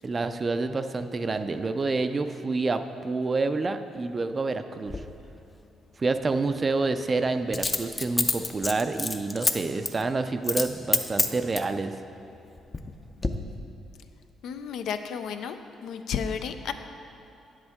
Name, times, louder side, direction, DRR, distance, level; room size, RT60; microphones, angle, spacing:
voice 1, 0.0-5.0 6.0-11.9, right 3 dB, 30° right, 9 dB, 0.4 m, -28 dB
Coin (dropping), 4.9-5.0 7.5-9.5 9.8-10.0 10.4-10.7 10.9-11.7 12.4-12.9 13.2-13.3, left 3 dB, 25° left, 0.5 m, -26 dB
voice 2, 14.4-15.6 15.8-16.7, left 7 dB, 80° left, 8 dB, 0.4 m, -32 dB
9.2 x 8.0 x 3.6 m, 2.7 s
cardioid pair, 90°, 0 cm